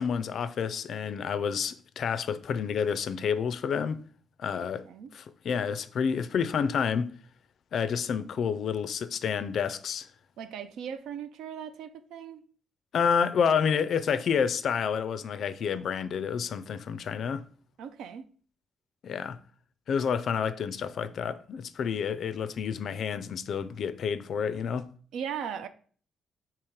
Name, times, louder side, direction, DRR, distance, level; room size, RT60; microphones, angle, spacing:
voice 1, 0.0-4.0 4.4-4.8 5.1-7.1 7.7-10.1 12.9-17.4 19.0-19.4 19.9-24.9, left 7 dB, 60° left, 0.3 m, -29 dB
voice 2, 10.4-12.4 17.8-18.3 25.1-25.7, right 8 dB, 80° right, 0.4 m, -38 dB
3.6 x 2.9 x 4.6 m
cardioid pair, 90°, 0 cm